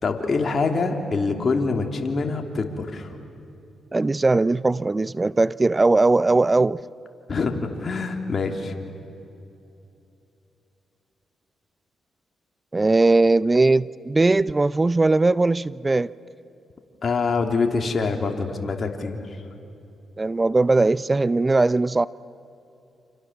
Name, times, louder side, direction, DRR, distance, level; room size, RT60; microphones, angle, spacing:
voice 1, 0.0-3.1 7.3-8.7 17.0-19.4, left 4 dB, 50° left, 3.0 m, -25 dB
voice 2, 3.9-6.8 12.7-16.1 20.2-22.1, right 3 dB, 30° right, 0.6 m, -19 dB
29.5 x 27.0 x 7.4 m
supercardioid pair, 50°, 0 cm